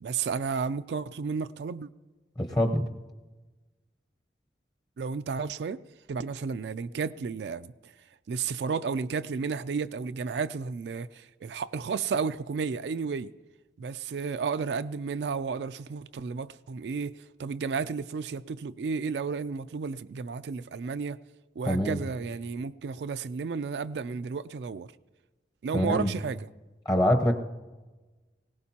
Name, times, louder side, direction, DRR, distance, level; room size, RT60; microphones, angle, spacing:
voice 1, 0.0-1.9 5.0-5.8 6.1-7.9 8.3-13.3 13.8-21.2 21.6-24.9 25.6-26.5, right 5 dB, 80° right, 0.4 m, -32 dB
voice 2, 2.4-2.9 21.7-22.0 25.7-26.1 26.8-27.4, equal, 25° left, 0.8 m, -24 dB
20.0 x 17.5 x 2.9 m
head